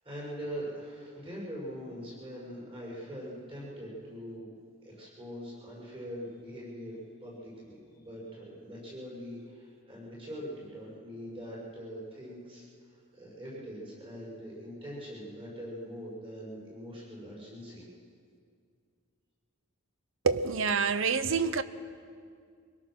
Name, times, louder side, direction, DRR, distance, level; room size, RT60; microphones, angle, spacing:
voice 1, 0.0-4.5 4.8-17.8, equal, 25° right, 6.4 m, -42 dB
voice 2, 20.2-21.6, right 5 dB, 60° right, 0.8 m, -27 dB
24.0 x 18.0 x 6.3 m
head